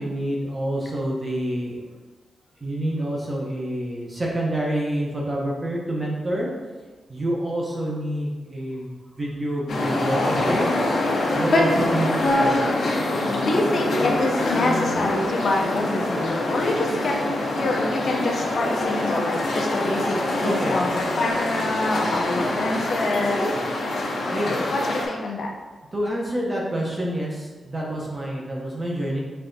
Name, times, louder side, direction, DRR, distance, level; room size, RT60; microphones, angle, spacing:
voice 1, 0.0-1.7 2.6-6.5 7.1-10.7 11.3-12.5 20.4-20.7 23.5-23.6 24.3-24.6 25.9-29.2, right 1 dB, 20° right, -3 dB, 0.8 m, -27 dB
sound 1, 9.7-25.1, left 2 dB, 85° left, 0.9 m, -25 dB
voice 2, 12.2-12.6 13.4-23.4 24.7-25.5, left 2 dB, 55° left, 0 dB, 0.6 m, -25 dB
5.5 x 3.4 x 2.7 m, 1.3 s
wide cardioid pair, 175°, 0 cm